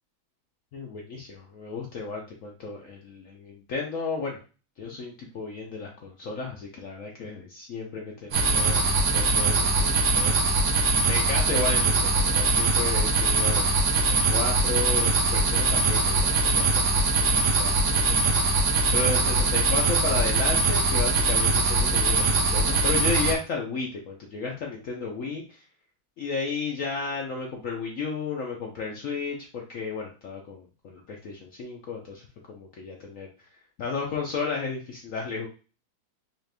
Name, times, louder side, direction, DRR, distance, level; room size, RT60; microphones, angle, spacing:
voice 1, 0.7-4.4 4.8-10.7 11.1-16.8 17.2-18.6 18.9-25.6 26.2-33.3 33.8-35.5, left 4 dB, 75° left, 0 dB, 0.7 m, -33 dB
sound 1, 8.3-23.3, right 3 dB, 70° right, 0.7 m, -22 dB
4.4 x 2.4 x 3.3 m, 0.35 s
omnidirectional pair, 2.1 m